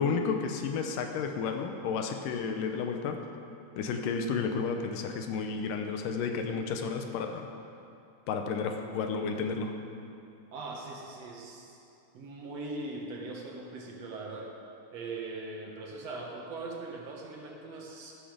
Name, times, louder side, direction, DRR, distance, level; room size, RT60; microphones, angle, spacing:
voice 1, 0.0-3.2 3.8-7.5 8.3-9.8, left 5 dB, 85° left, 5 dB, 2.5 m, -32 dB
voice 2, 10.5-11.9 12.1-14.5 14.9-18.2, right 3 dB, 60° right, -1 dB, 2.3 m, -40 dB
13.5 x 13.0 x 5.1 m, 2.7 s
omnidirectional pair, 3.8 m